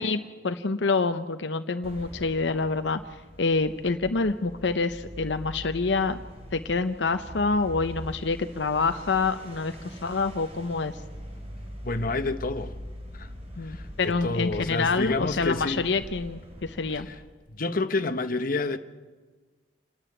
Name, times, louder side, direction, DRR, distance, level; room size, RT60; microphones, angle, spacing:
voice 1, 0.0-3.0 3.4-6.2 6.5-10.9 13.6-17.1, left 4 dB, 80° left, 0.8 m, -27 dB
sound 1, 1.8-17.3, equal, 35° right, 3.8 m, -42 dB
voice 2, 11.8-12.8 13.1-13.3 13.6-15.8 16.9-17.2 17.5-18.8, left 3 dB, 50° left, 1.1 m, -29 dB
27.5 x 10.0 x 9.9 m
head